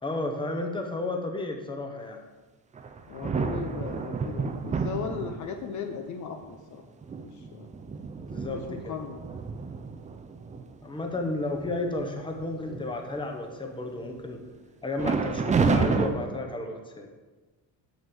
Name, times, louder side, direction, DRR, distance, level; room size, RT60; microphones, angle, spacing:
voice 1, 0.0-2.2 8.3-9.0 10.8-14.4 14.8-17.1, left 2 dB, 15° left, 3 dB, 1.0 m, -32 dB
sound 1, 2.8-5.7 6.4-6.5 7.0-10.6 11.1-11.3 11.6-12.0 12.4-13.2 15.0-16.1, right 4 dB, 20° right, 0.5 m, -30 dB
voice 2, 3.1-6.4 6.7-6.8 7.2-7.7 8.7-9.2, left 6 dB, 50° left, 6 dB, 0.7 m, -37 dB
6.4 x 6.2 x 7.1 m, 1.3 s
cardioid pair, 150°, 38 cm